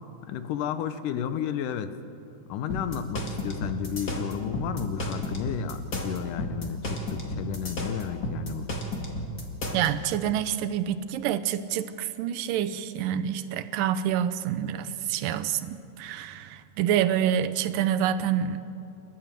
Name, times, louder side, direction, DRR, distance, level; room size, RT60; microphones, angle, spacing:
voice 1, 0.2-1.9 2.5-8.7, left 9 dB, 75° left, 11 dB, 2.2 m, -32 dB
sound 1, 2.7-9.9, left 1 dB, 30° left, 2.2 m, -32 dB
voice 2, 9.7-18.6, right 10 dB, 80° right, 10 dB, 2.4 m, -27 dB
29.5 x 13.0 x 7.5 m, 2.7 s
omnidirectional pair, 4.0 m